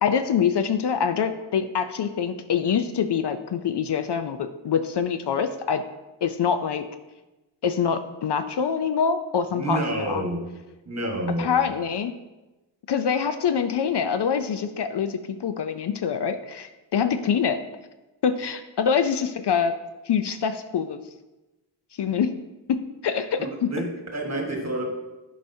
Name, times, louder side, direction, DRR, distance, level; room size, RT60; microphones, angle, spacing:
voice 1, 0.0-5.8 6.2-6.8 7.6-10.2 11.4-12.1 12.9-17.6 18.2-19.7 20.1-21.0 22.0-22.4 22.7-23.9, left 7 dB, 60° left, 10 dB, 0.5 m, -25 dB
voice 2, 9.5-10.4 10.9-11.6 23.4-24.9, right 1 dB, 35° right, 1 dB, 1.3 m, -29 dB
11.0 x 5.0 x 2.7 m, 1.1 s
wide cardioid pair, 105°, 47 cm